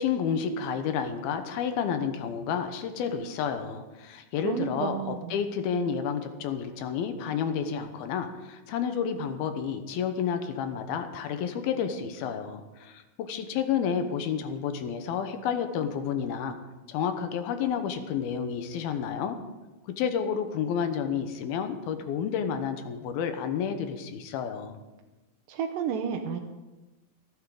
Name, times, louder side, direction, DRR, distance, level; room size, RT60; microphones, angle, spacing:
voice 1, 0.0-16.6 16.9-19.4 20.0-24.8, left 7 dB, 85° left, 7 dB, 2.9 m, -30 dB
voice 2, 4.4-5.4 25.5-26.4, right 7 dB, 75° right, 3 dB, 2.3 m, -31 dB
27.5 x 9.3 x 3.8 m, 1.1 s
omnidirectional pair, 4.3 m